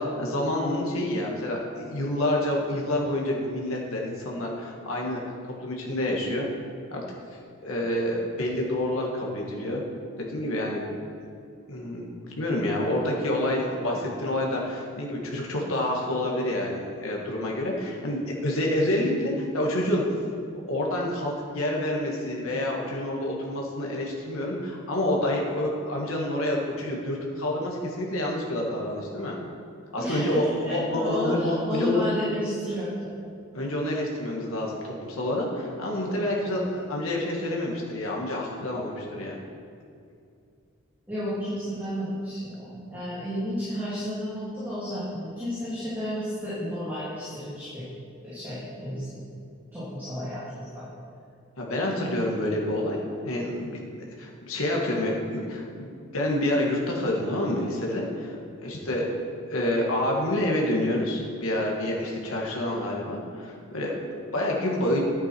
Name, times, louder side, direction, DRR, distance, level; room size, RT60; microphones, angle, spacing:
voice 1, 0.0-6.5 6.9-7.0 7.6-9.8 10.2-10.8 11.7-12.1 12.4-20.0 20.7-29.4 29.9-32.0 33.5-39.4 51.6-59.1 59.5-65.0, left 1 dB, 75° left, -2 dB, 1.8 m, -28 dB
voice 2, 30.0-33.3 41.1-47.8 48.2-49.2 49.7-50.8, equal, 10° right, -13 dB, 2.7 m, -32 dB
10.0 x 8.2 x 4.6 m, 2.4 s
head